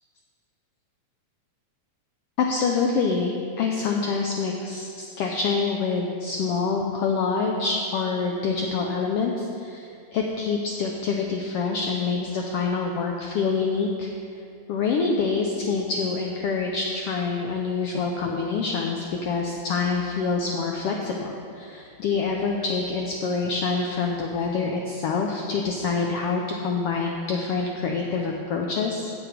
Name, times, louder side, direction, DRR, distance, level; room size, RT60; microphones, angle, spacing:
voice 1, 2.4-14.1 14.7-29.1, left 4 dB, 85° left, 1 dB, 1.3 m, -26 dB
9.8 x 7.8 x 5.0 m, 2.4 s
omnidirectional pair, 3.4 m